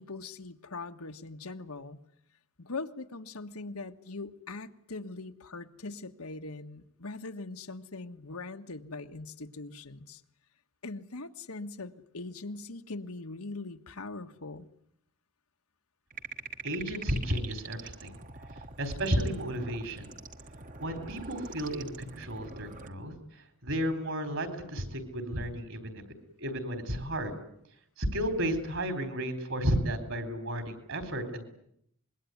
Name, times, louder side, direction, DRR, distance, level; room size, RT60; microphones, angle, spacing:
voice 1, 0.0-2.0 2.6-10.2 10.8-14.7, left 3 dB, 85° left, 6 dB, 1.5 m, -41 dB
sound 1, 16.1-22.9, right 4 dB, 35° right, 1.3 m, -45 dB
voice 2, 16.6-18.1 18.8-20.1 20.8-23.1 23.6-26.0 26.4-27.3 28.0-31.4, equal, 60° right, 9 dB, 4.5 m, -32 dB
25.5 x 22.0 x 9.5 m, 0.72 s
head